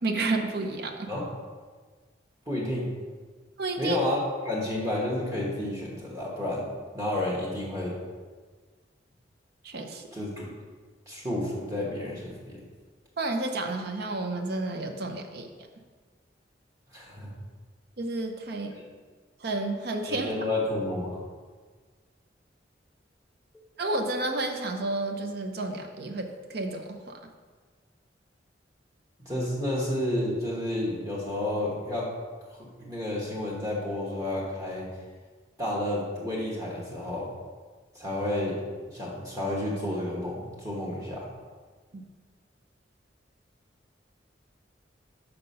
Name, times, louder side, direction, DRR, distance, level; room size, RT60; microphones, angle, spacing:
voice 1, 0.0-1.1 3.6-4.0 9.6-10.1 13.2-15.5 18.0-18.7 19.4-20.3 23.8-27.2 41.9-42.0, right 2 dB, 60° right, 5 dB, 0.7 m, -31 dB
voice 2, 2.5-2.9 3.8-6.7 6.9-8.0 10.1-10.5 11.1-12.6 16.9-17.3 20.1-21.2 29.2-32.1 32.6-34.9 35.6-37.3 37.9-38.6 38.9-41.3, left 1 dB, 20° right, -5 dB, 1.1 m, -30 dB
5.9 x 5.6 x 5.3 m, 1.5 s
head